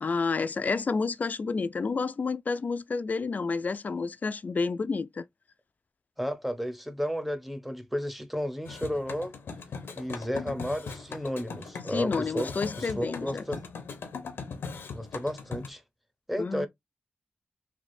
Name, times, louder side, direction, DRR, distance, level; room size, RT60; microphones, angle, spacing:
voice 1, 0.0-5.2 11.9-13.4 16.4-16.7, left 4 dB, 45° left, 0.3 m, -30 dB
voice 2, 6.2-9.3 9.9-13.6 14.9-15.8 16.3-16.7, equal, 5° right, 0.7 m, -33 dB
sound 1, 8.7-15.7, left 5 dB, 80° left, 0.7 m, -39 dB
3.3 x 2.4 x 2.5 m
cardioid pair, 65°, 4 cm